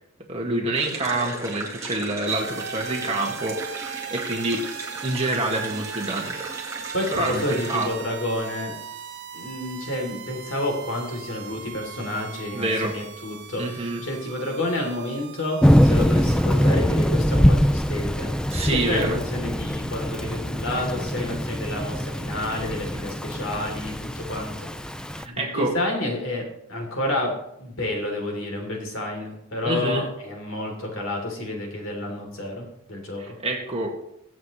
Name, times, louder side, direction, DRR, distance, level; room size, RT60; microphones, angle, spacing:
voice 1, 0.3-4.6 5.0-6.4 7.1-7.9 12.5-12.9 13.6-14.0 18.5-19.2 25.2-25.7 29.6-30.1 33.2-34.0, right 2 dB, 30° right, 0 dB, 2.0 m, -27 dB
sound 1, 0.8-7.9, right 2 dB, 15° right, 1.8 m, -36 dB
sound 2, 2.3-16.7, right 7 dB, 55° right, 0.6 m, -39 dB
voice 2, 6.9-8.7 9.3-18.3 18.6-24.7 25.0-33.4, left 1 dB, 65° left, 1 dB, 3.3 m, -30 dB
Thunder / Rain, 15.6-25.2, equal, 5° left, 0.4 m, -23 dB
22.0 x 7.4 x 3.2 m, 0.79 s
head